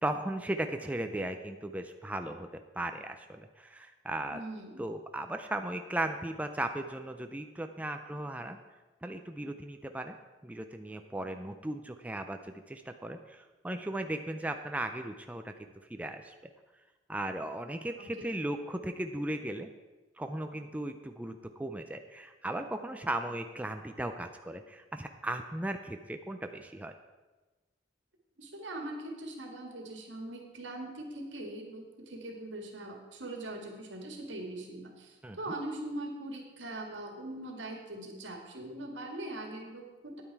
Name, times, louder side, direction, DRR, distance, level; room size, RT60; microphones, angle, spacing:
voice 1, 0.0-4.4 4.8-8.6 9.0-10.2 10.4-15.5 15.9-16.3 17.1-19.7 20.2-26.9 35.2-35.4, right 1 dB, 10° right, 6 dB, 0.4 m, -37 dB
voice 2, 4.3-4.8 18.0-18.4 28.4-40.2, right 1 dB, 85° right, 2 dB, 1.9 m, -41 dB
10.0 x 8.8 x 4.7 m, 1.2 s
head